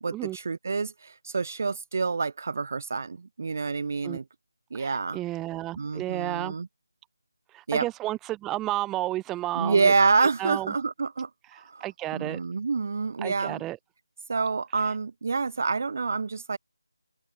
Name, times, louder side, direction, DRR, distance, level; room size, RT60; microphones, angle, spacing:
voice 1, 0.0-4.2 4.7-5.2 5.8-6.7 7.7-7.9 9.6-11.3 11.7-11.8 12.1-13.6 14.3-16.6, right 4 dB, 40° right, 0.5 m, -27 dB
voice 2, 4.7-6.6 7.5-9.9 10.2-10.7 11.5-12.4 13.2-13.8 14.8-14.9, right 16 dB, 10° right, 1.9 m, -32 dB
open air
figure-of-eight pair, 160°, 2 cm